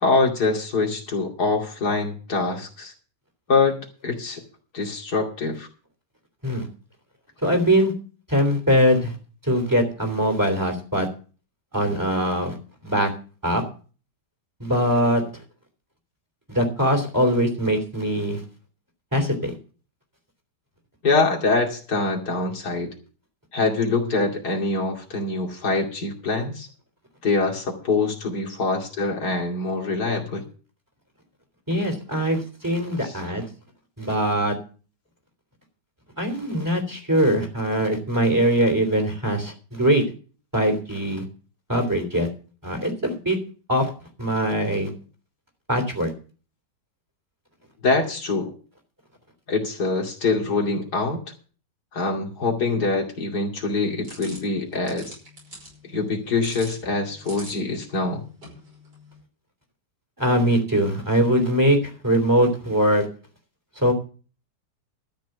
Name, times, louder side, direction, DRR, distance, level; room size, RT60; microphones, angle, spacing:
voice 1, 0.0-2.9 3.5-4.4 4.7-5.7 21.0-22.9 23.5-26.7 27.2-30.4 33.0-33.2 47.8-48.5 49.5-51.2 51.9-55.2 55.8-58.2, left 3 dB, 65° left, 1 dB, 3.1 m, -24 dB
voice 2, 7.4-7.9 8.3-9.1 9.4-11.1 11.7-12.6 12.8-13.1 13.4-13.6 14.6-15.2 16.5-18.4 19.1-19.5 31.7-33.5 34.0-34.6 36.2-40.0 40.5-41.2 41.7-42.3 42.6-43.4 43.7-43.9 44.2-44.9 45.7-46.1 60.2-63.1 63.8-63.9, equal, 10° right, 5 dB, 3.1 m, -22 dB
sound 1, 54.0-59.2, equal, 80° right, 6.0 m, -45 dB
13.5 x 6.0 x 7.9 m, 0.39 s
omnidirectional pair, 1.8 m